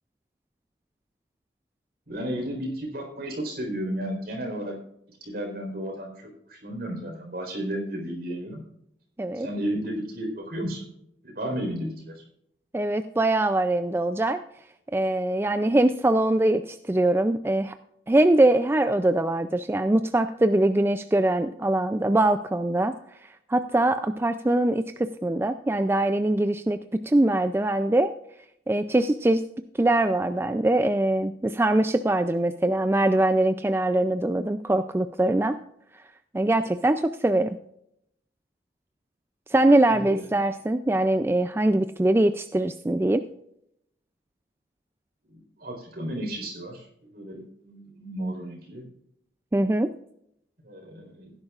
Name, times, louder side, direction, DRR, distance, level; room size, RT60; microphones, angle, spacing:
voice 1, 2.1-4.7 5.2-8.6 9.3-10.8 11.2-12.2 39.8-40.3 45.3-48.8 50.6-51.3, right 1 dB, 55° right, 1 dB, 4.2 m, -33 dB
voice 2, 12.7-14.4 14.9-17.8 18.1-22.9 23.2-28.1 28.7-29.4 29.8-35.6 36.3-37.6 39.5-43.2 49.5-49.9, right 1 dB, 15° right, 9 dB, 0.4 m, -22 dB
17.0 x 10.5 x 2.4 m, 0.75 s
head